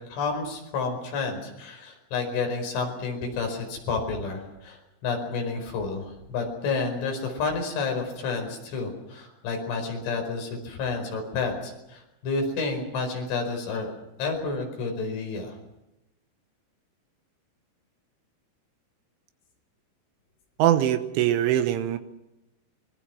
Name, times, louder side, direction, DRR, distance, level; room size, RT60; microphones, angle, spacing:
voice 1, 0.1-15.6, left 4 dB, 85° left, 4 dB, 7.4 m, -30 dB
voice 2, 20.6-22.0, right 12 dB, 90° right, 9 dB, 3.7 m, -22 dB
25.0 x 23.0 x 6.2 m, 0.92 s
omnidirectional pair, 5.4 m